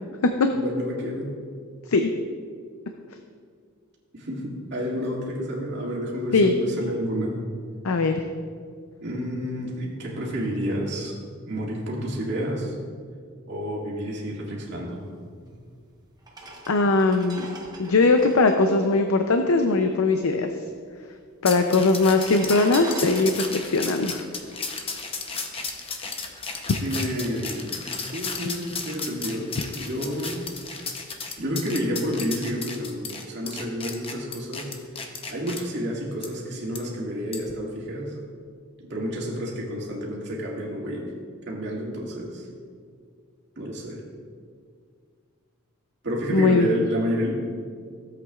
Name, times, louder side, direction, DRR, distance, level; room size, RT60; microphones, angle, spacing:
voice 1, 0.5-1.3 4.1-7.4 9.0-11.1 11.5-12.7 13.5-15.0 26.8-30.5 31.4-34.7 35.3-38.2 38.8-41.1 41.5-42.5 43.6-44.0 46.0-47.3, equal, 55° right, -4 dB, 2.1 m, -30 dB
voice 2, 7.8-8.2 16.7-17.5 17.8-20.5 21.4-24.3 46.3-46.7, left 3 dB, 80° left, 6 dB, 0.5 m, -20 dB
sound 1, 15.5-15.6 16.2-19.9 20.1-20.2 20.4-21.1 21.8-25.3 25.7-25.9, right 2 dB, 20° right, 1.0 m, -41 dB
sound 2, 21.4-35.6 36.2-36.3 36.7-36.8 37.3-37.5, left 4 dB, 25° left, 0.8 m, -34 dB
16.0 x 8.0 x 2.4 m, 2.1 s
head